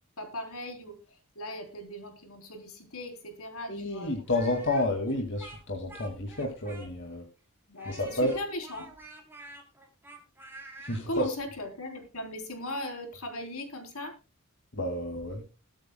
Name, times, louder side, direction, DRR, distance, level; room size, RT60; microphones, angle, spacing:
voice 1, 0.2-4.3 4.8-4.9 7.7-8.9 11.1-14.2, left 1 dB, 70° left, 5 dB, 3.6 m, -38 dB
voice 2, 3.7-7.2 7.9-8.3 10.8-11.3 14.7-15.4, left 1 dB, 55° left, 2 dB, 2.2 m, -30 dB
Speech, 4.3-7.2 7.8-11.0, right 2 dB, 10° right, 3.3 m, -48 dB
21.5 x 8.8 x 2.2 m, 0.29 s
head